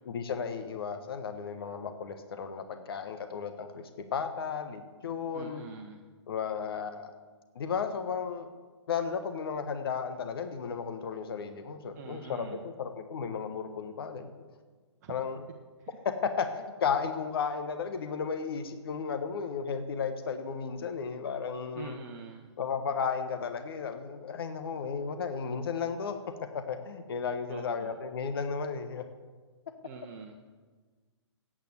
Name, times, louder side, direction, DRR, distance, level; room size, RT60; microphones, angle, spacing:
voice 1, 0.0-5.6 6.3-7.1 7.5-8.5 8.9-14.4 15.1-15.4 16.2-22.0 22.6-26.2 26.5-29.0, left 6 dB, 55° left, 8 dB, 1.3 m, -34 dB
voice 2, 5.3-6.0 12.0-12.6 15.0-15.1 15.8-15.9 21.8-22.5 27.5-28.0 29.8-30.3, right 6 dB, 35° right, 3 dB, 1.1 m, -45 dB
13.5 x 9.0 x 7.9 m, 1.4 s
figure-of-eight pair, 125°, 15 cm